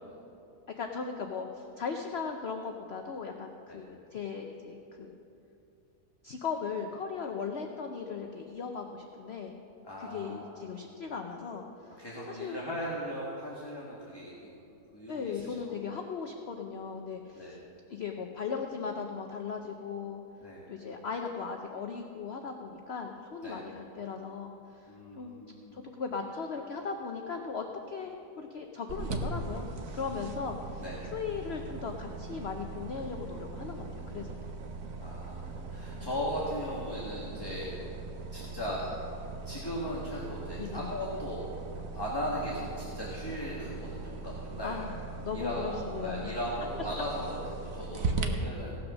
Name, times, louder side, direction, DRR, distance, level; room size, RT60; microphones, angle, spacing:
voice 1, 0.8-5.2 6.2-9.5 10.0-11.9 12.3-12.6 15.1-17.6 17.9-20.2 20.7-24.5 25.2-25.4 25.7-30.8 31.1-34.5 40.6-40.9 44.6-46.3 48.2-48.4, left 5 dB, 55° left, 3 dB, 0.8 m, -38 dB
voice 2, 9.8-10.7 12.0-16.0 17.3-17.6 20.4-20.6 23.4-23.6 24.9-25.8 29.9-30.0 30.8-31.0 35.0-37.9 38.3-38.9 39.4-41.4 41.9-44.8 45.3-48.8, equal, 15° left, -6 dB, 1.6 m, -38 dB
sound 1, 28.9-48.3, right 3 dB, 60° right, 1.3 m, -39 dB
17.0 x 6.1 x 6.2 m, 2.8 s
omnidirectional pair, 1.7 m